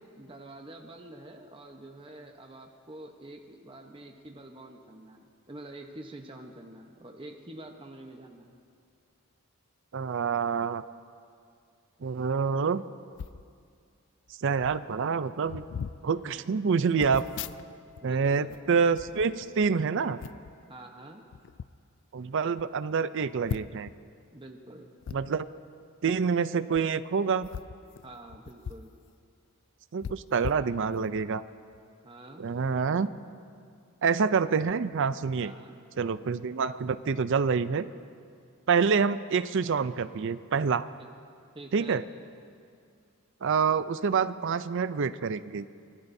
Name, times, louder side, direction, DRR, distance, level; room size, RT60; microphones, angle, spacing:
voice 1, 0.2-8.6 16.2-16.5 18.0-18.6 20.7-21.2 24.3-24.9 28.0-28.9 32.0-32.5 35.4-35.8 41.0-41.1 41.5-42.0, right 1 dB, 25° right, 3 dB, 0.9 m, -47 dB
voice 2, 9.9-10.8 12.0-12.8 14.4-15.6 16.0-17.3 18.0-20.2 22.1-23.9 25.1-25.5 26.0-27.5 29.9-31.4 32.4-33.1 34.0-35.5 36.0-37.9 38.7-40.9 41.7-42.0 43.4-45.7, right 5 dB, 55° right, 14 dB, 0.4 m, -27 dB
sound 1, 13.1-13.4 14.3-14.4 14.6-14.9 15.4-16.0 17.0-18.0 18.3-19.7 20.2-20.5 21.3-21.7 22.2-22.3 22.6-22.7 23.4-23.9 25.0-25.2 26.6-26.8 27.4-28.9 29.2-29.3 30.0-31.2 31.7-31.9, left 7 dB, 55° left, 0.3 m, -39 dB
24.5 x 19.5 x 2.7 m, 2.3 s
head